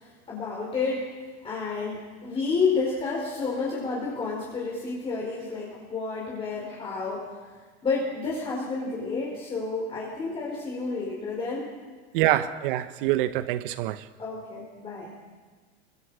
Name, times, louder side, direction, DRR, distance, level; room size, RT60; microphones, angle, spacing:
voice 1, 0.3-1.1 1.4-7.3 7.8-11.7 12.3-12.5 14.2-15.1, left 4 dB, 20° left, 4.9 m, -30 dB
voice 2, 12.1-14.0, right 14 dB, 55° right, 1.1 m, -25 dB
28.0 x 24.0 x 5.0 m
supercardioid pair, 150°, 32 cm